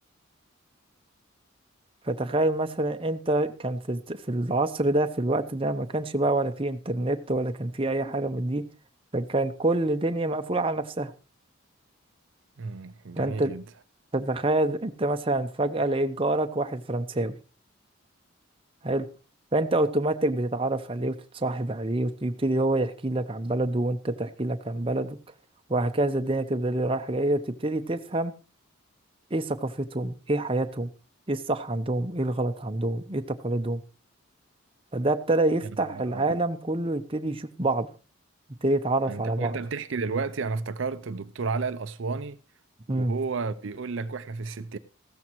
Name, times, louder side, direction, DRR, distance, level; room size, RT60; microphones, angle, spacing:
voice 1, 2.0-8.6 9.1-11.1 13.2-13.5 14.1-17.4 18.8-19.1 19.5-25.2 25.7-28.3 29.3-30.9 31.3-33.8 34.9-37.9 38.6-39.6 42.9-43.1, right 2 dB, 25° right, 0.7 m, -27 dB
voice 2, 12.6-13.6 35.9-36.4 39.1-42.4 42.9-44.8, right 4 dB, 65° right, 0.5 m, -32 dB
15.5 x 13.5 x 3.0 m
head